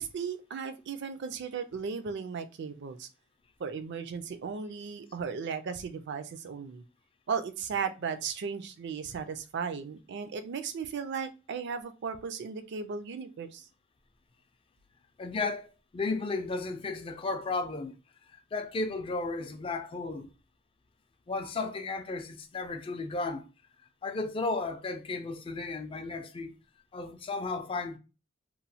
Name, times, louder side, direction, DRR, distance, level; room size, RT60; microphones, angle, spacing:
voice 1, 0.0-3.1 3.6-6.8 7.3-13.7, right 6 dB, 60° right, 0.4 m, -36 dB
voice 2, 15.2-15.7 15.9-18.0 18.3-20.3 21.3-23.5 24.0-26.6 26.9-28.0, left 3 dB, 25° left, 0.4 m, -34 dB
3.0 x 2.1 x 2.7 m
head